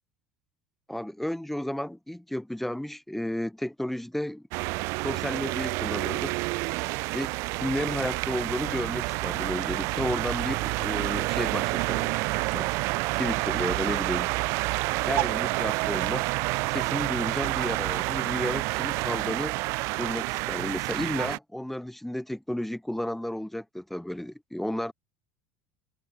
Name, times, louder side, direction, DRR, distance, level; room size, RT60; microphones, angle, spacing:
voice 1, 0.9-4.5 5.0-6.4 7.1-7.3 7.6-12.7 13.2-14.3 15.0-16.3 16.7-19.6 20.0-24.9, left 1 dB, 5° left, 0.7 m, -32 dB
sound 1, 4.5-21.4, right 25 dB, 60° right, 0.6 m, -29 dB
hypercardioid pair, 75°, 6 cm